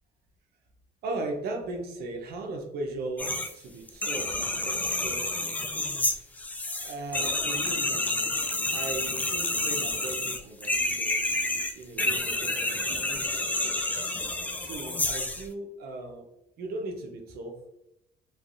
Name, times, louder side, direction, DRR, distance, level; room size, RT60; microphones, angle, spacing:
voice 1, 1.0-5.5 6.7-8.1 8.7-13.9 14.5-16.3 16.6-17.7, right 2 dB, 70° right, 3 dB, 0.7 m, -38 dB
sound 1, 3.2-3.5 3.9-15.5, left 2 dB, 10° left, 0.3 m, -29 dB
3.3 x 2.3 x 2.4 m, 0.84 s
cardioid pair, 110°, 17 cm